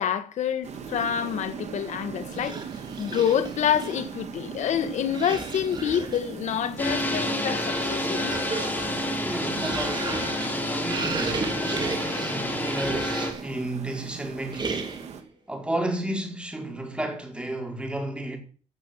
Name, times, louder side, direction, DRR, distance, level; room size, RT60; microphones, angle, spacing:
voice 1, 0.0-2.6 3.0-8.4, left 9 dB, 80° left, 1.6 m, -27 dB
sound 1, 0.6-15.2, right 6 dB, 70° right, 2.2 m, -40 dB
sound 2, 2.3-4.2 5.1-6.3 7.0-13.5 14.5-15.2, right 4 dB, 40° right, 3.2 m, -35 dB
sound 3, 6.8-13.3, left 1 dB, 15° left, 3.9 m, -29 dB
voice 2, 9.2-14.9 15.5-18.4, right 1 dB, 10° right, 4.1 m, -33 dB
15.5 x 6.2 x 7.6 m
cardioid pair, 100°, 12 cm